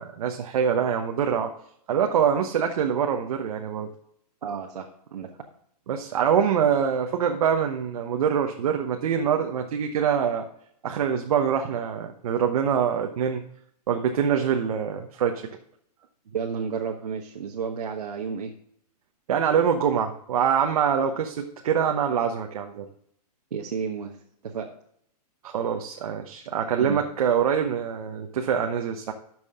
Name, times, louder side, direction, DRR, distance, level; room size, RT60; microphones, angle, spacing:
voice 1, 0.0-1.5 1.9-3.9 5.9-10.5 10.8-13.4 13.9-15.4 19.3-22.9 25.4-29.1, right 7 dB, 65° right, 4 dB, 1.1 m, -24 dB
voice 2, 4.4-5.3 16.3-18.5 23.5-24.2 24.4-24.7 26.8-27.0, right 6 dB, 85° right, 1 dB, 1.3 m, -31 dB
12.5 x 6.2 x 3.7 m, 0.69 s
hypercardioid pair, 150°, 21 cm